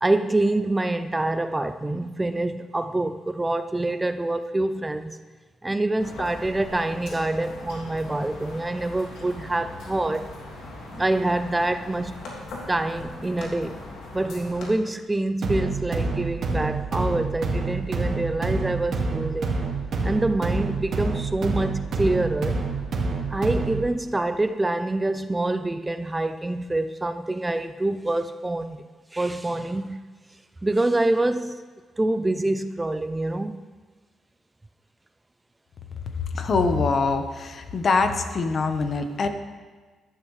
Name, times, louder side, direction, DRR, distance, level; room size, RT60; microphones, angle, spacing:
voice 1, 0.0-5.2 5.6-10.3 10.9-12.1 12.7-13.8 14.1-19.5 20.0-22.6 23.3-28.9 29.1-30.0 30.6-31.6 32.0-33.6, right 2 dB, 15° right, 0.4 m, -26 dB
sound 1, 6.0-14.7, left 2 dB, 85° left, 2.7 m, -40 dB
sound 2, 15.4-23.9, right 3 dB, 60° right, 1.9 m, -27 dB
voice 2, 36.3-39.3, left 4 dB, 50° left, 1.0 m, -24 dB
14.0 x 12.0 x 3.3 m
cardioid pair, 105°, 0 cm